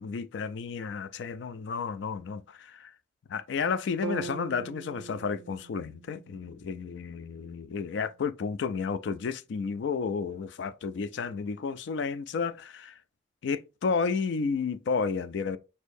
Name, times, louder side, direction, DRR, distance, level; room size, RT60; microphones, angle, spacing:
voice 1, 0.0-2.9 3.3-13.0 13.4-15.6, left 5 dB, 70° left, 0.4 m, -32 dB
sound 1, 4.0-8.1, right 4 dB, 65° right, 0.4 m, -42 dB
6.2 x 2.7 x 2.6 m
head